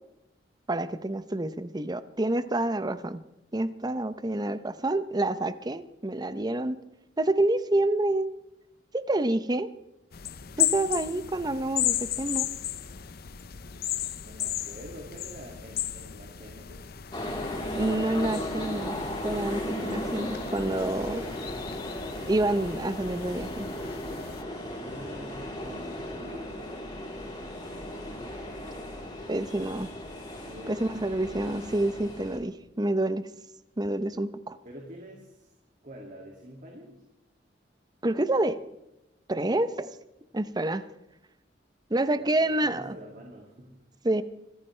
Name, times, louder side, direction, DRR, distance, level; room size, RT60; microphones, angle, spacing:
voice 1, 0.7-3.2 3.5-6.8 7.2-8.3 8.9-9.7 10.6-12.5 17.7-19.0 19.2-21.2 22.3-23.7 29.3-29.9 30.7-33.3 33.8-34.6 38.0-38.6 39.3-39.9 40.3-40.8 41.9-42.9 44.0-44.2, right 2 dB, 25° right, 13 dB, 0.7 m, -28 dB
sound 1, 10.1-24.4, left 11 dB, 60° left, 0.7 m, -35 dB
voice 2, 14.2-16.8 24.7-29.9 30.4-31.4 34.6-35.5 35.8-37.0 42.1-43.8, equal, 45° right, -1 dB, 2.4 m, -47 dB
sound 2, 17.1-32.4, left 1 dB, 25° left, 3.7 m, -36 dB
25.5 x 14.0 x 3.3 m, 0.87 s
head